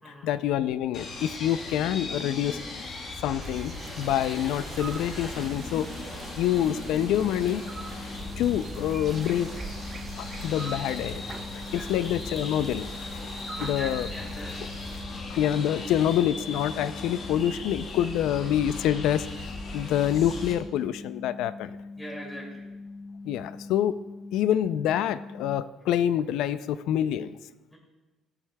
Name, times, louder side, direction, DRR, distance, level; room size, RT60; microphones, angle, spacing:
voice 1, 0.1-2.6 3.2-6.0 6.4-7.7 8.4-9.6 10.2-11.3 11.5-12.9 13.6-14.1 14.6-14.7 15.3-21.7 23.2-24.0 24.3-27.4, left 11 dB, 80° left, 15 dB, 0.3 m, -26 dB
sound 1, 0.9-20.5, left 3 dB, 50° left, 1.3 m, -38 dB
sound 2, 3.4-15.1, right 5 dB, 30° right, 0.3 m, -43 dB
sound 3, 6.9-25.5, left 3 dB, 60° right, 1.4 m, -43 dB
voice 2, 13.7-14.7 22.0-22.6 27.7-27.8, equal, 5° left, -3 dB, 2.2 m, -41 dB
15.5 x 7.8 x 2.2 m, 1.2 s
cardioid pair, 160°, 0 cm